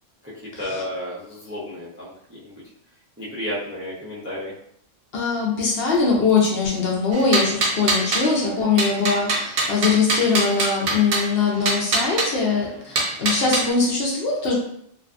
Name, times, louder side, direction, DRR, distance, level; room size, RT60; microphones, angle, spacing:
voice 1, 0.2-2.1 2.4-2.6 3.2-4.5, left 1 dB, 20° right, -7 dB, 0.3 m, -32 dB
voice 2, 5.1-14.5, left 4 dB, 60° left, -2 dB, 0.7 m, -21 dB
sound 1, 7.1-8.3 8.8-11.3 11.7-12.3 13.0-13.7, right 3 dB, 60° right, 0.7 m, -23 dB
2.6 x 2.3 x 2.4 m, 0.71 s
omnidirectional pair, 1.3 m